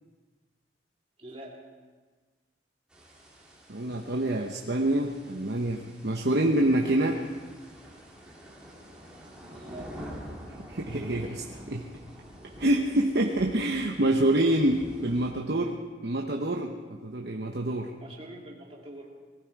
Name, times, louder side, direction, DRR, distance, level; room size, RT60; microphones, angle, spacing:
voice 1, 1.2-1.6 9.4-9.9 18.0-19.1, right 1 dB, 30° right, -3 dB, 2.9 m, -44 dB
sound 1, 2.9-15.3, equal, 5° right, 2.7 m, -47 dB
voice 2, 3.7-7.2 10.7-11.8 12.6-15.7 16.0-16.7 17.0-17.9, right 1 dB, 55° right, 1 dB, 1.0 m, -26 dB
20.0 x 15.5 x 4.7 m, 1.4 s
head